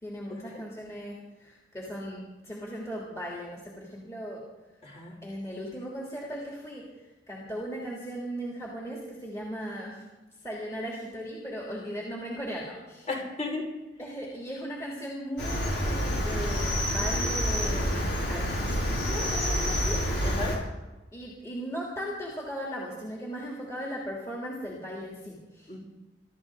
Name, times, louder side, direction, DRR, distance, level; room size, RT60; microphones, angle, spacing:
voice 1, 0.0-4.4 5.2-6.9 7.3-10.0 10.4-13.1 14.0-17.9 18.3-20.0 21.1-25.7, equal, 15° left, -4 dB, 3.1 m, -37 dB
voice 2, 4.8-5.1 13.1-13.6 20.2-20.6 25.7-25.8, left 3 dB, 40° left, -1 dB, 5.0 m, -34 dB
Cricket, 15.4-20.6, equal, 90° left, 6.3 m, -28 dB
25.0 x 13.5 x 3.9 m, 1.1 s
head